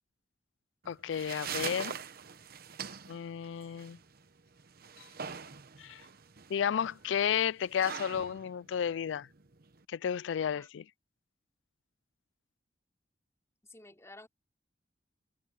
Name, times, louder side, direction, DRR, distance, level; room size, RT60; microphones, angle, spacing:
sound 1, 0.8-9.8, right 7 dB, 55° right, 1.0 m, -43 dB
voice 1, 0.9-1.9 3.1-4.0 5.8-6.0 6.5-9.3 9.9-10.8, left 8 dB, 85° left, 0.4 m, -32 dB
voice 2, 13.6-14.3, left 2 dB, 15° left, 3.8 m, -53 dB
head